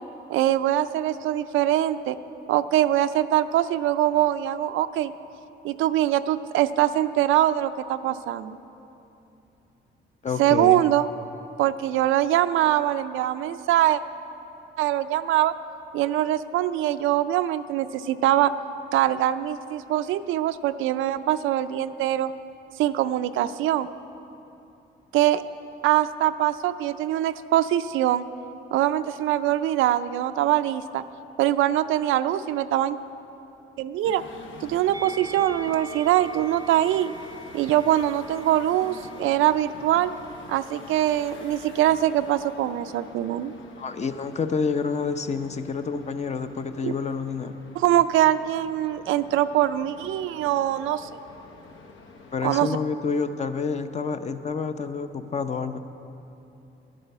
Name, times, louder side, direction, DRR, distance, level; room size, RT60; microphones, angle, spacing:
voice 1, 0.3-2.2 2.5-5.1 5.6-8.6 10.4-11.1 11.6-14.0 14.8-15.5 15.9-18.5 18.9-22.3 22.8-23.9 25.1-25.4 25.8-28.2 28.7-31.0 31.4-33.0 33.8-34.2 34.6-37.1 37.5-40.1 40.5-43.5 46.8-46.9 47.8-51.1 52.4-52.7, right 13 dB, 90° right, 12 dB, 0.4 m, -23 dB
voice 2, 10.2-10.8 43.8-47.5 52.3-55.8, left 5 dB, 35° left, 9 dB, 0.6 m, -28 dB
sound 1, 34.0-52.6, left 4 dB, 75° left, 0.9 m, -47 dB
Musical instrument, 34.9-41.3 42.2-43.2, right 1 dB, 20° right, 0.6 m, -45 dB
11.5 x 9.1 x 6.7 m, 2.8 s
cardioid pair, 90°, 20 cm